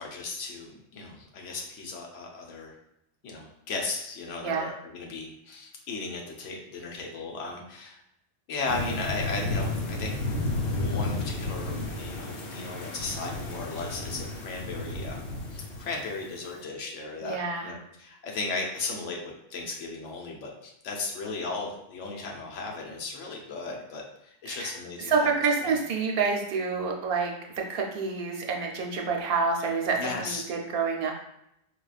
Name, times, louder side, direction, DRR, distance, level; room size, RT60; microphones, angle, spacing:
voice 1, 0.0-2.8 3.2-8.0 8.5-10.2 10.6-15.2 15.5-17.4 17.6-25.3 25.6-25.8 30.0-30.4, left 3 dB, 90° left, 0 dB, 1.0 m, -36 dB
sound 1, 8.7-16.3, left 2 dB, 60° left, 0.8 m, -32 dB
voice 2, 17.2-17.7 24.5-24.7 25.1-31.1, right 4 dB, 60° right, 1 dB, 0.8 m, -28 dB
4.4 x 2.3 x 2.3 m, 0.79 s
omnidirectional pair, 1.2 m